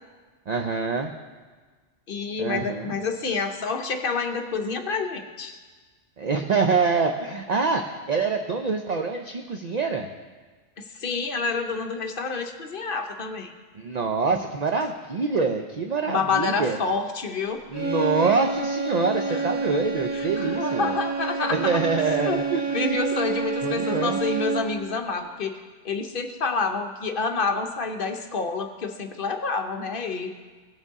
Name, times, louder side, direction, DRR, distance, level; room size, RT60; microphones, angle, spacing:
voice 1, 0.5-1.1 2.4-2.9 6.2-10.1 13.7-16.8 17.7-20.9 21.5-22.6 23.6-24.2, right 4 dB, 50° right, 4 dB, 0.5 m, -25 dB
voice 2, 2.1-5.6 10.8-13.5 16.1-17.6 19.3-19.5 20.1-25.6 25.8-30.3, left 4 dB, 55° left, 5 dB, 0.9 m, -28 dB
sound 1, 17.7-24.9, right 4 dB, 15° right, 1.3 m, -28 dB
17.0 x 6.6 x 3.6 m, 1.4 s
omnidirectional pair, 1.2 m